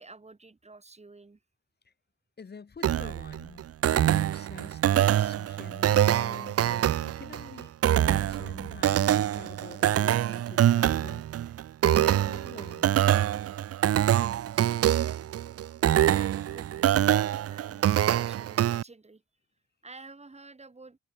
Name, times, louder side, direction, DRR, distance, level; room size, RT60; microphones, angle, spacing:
voice 1, 0.0-1.4 15.8-16.0 16.3-19.2 19.8-21.0, right 3 dB, 20° right, 6.5 m, -51 dB
voice 2, 2.4-11.4 11.8-12.9, left 5 dB, 35° left, 2.9 m, -46 dB
sound 1, 2.8-18.8, right 11 dB, 50° right, 0.7 m, -25 dB
cardioid pair, 90°, 30 cm